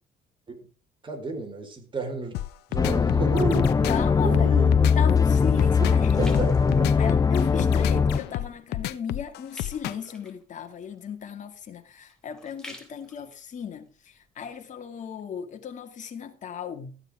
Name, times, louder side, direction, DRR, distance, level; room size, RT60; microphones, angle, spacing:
voice 1, 1.0-2.3 2.7-3.7 4.2-4.9 5.8-5.9 6.2-6.5 6.8-6.9 7.9-8.0, right 3 dB, 30° right, 4.4 m, -31 dB
sound 1, 2.3-10.1, left 15 dB, 85° left, 1.0 m, -32 dB
sound 2, 2.8-8.2, left 6 dB, 20° left, 0.6 m, -21 dB
voice 2, 3.8-4.5 5.0-6.5 7.0-17.0, left 7 dB, 45° left, 2.3 m, -36 dB
sound 3, 5.5-7.6 8.0-8.4 8.7-14.6 15.2-15.3, left 1 dB, 5° left, 3.7 m, -50 dB
14.5 x 9.0 x 5.0 m
cardioid pair, 110°, 17 cm